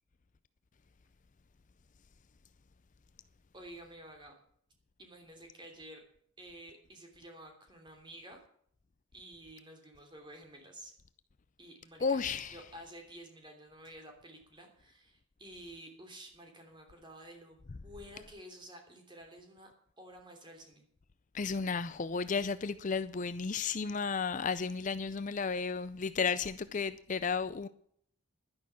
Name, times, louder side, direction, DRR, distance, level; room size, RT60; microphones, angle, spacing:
voice 1, 3.5-4.4 5.0-6.0 6.4-8.4 9.1-10.9 11.6-12.2 12.5-19.7 20.0-20.9, right 1 dB, 20° right, 3.1 m, -51 dB
voice 2, 12.0-12.6 21.3-27.7, left 5 dB, 35° left, 0.4 m, -33 dB
11.5 x 10.5 x 7.0 m
head